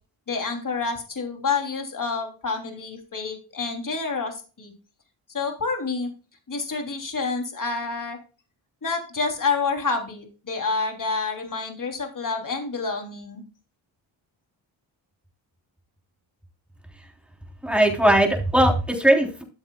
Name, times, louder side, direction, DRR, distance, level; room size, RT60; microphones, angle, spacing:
voice 1, 0.3-4.7 5.3-6.1 6.5-8.2 8.8-13.4, left 4 dB, 40° left, 3 dB, 3.2 m, -28 dB
voice 2, 17.6-19.4, right 1 dB, ahead, 1 dB, 3.6 m, -19 dB
13.5 x 7.2 x 2.3 m, 0.33 s
cardioid pair, 60°, 47 cm